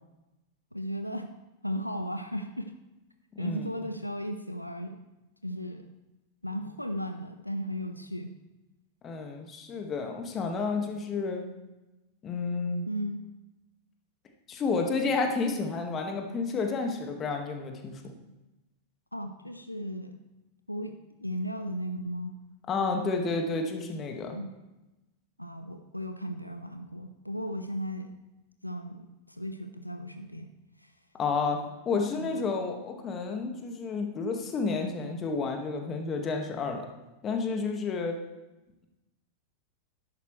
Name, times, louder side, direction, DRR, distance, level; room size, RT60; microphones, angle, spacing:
voice 1, 0.7-1.3 1.6-2.7 3.4-5.0 5.4-5.9 6.4-8.4 12.9-13.2 19.1-20.2 20.7-22.4 24.3-24.5 25.4-28.1 28.6-30.5 30.8-30.9 32.1-32.5, equal, 90° left, 7 dB, 0.6 m, -36 dB
voice 2, 3.3-3.7 9.0-11.5 12.2-12.8 14.5-18.1 22.7-24.4 31.1-31.6 31.8-36.9 37.2-38.2, left 4 dB, 25° left, 3 dB, 1.7 m, -30 dB
12.5 x 11.0 x 3.2 m, 1.0 s
figure-of-eight pair, 90°, 0 cm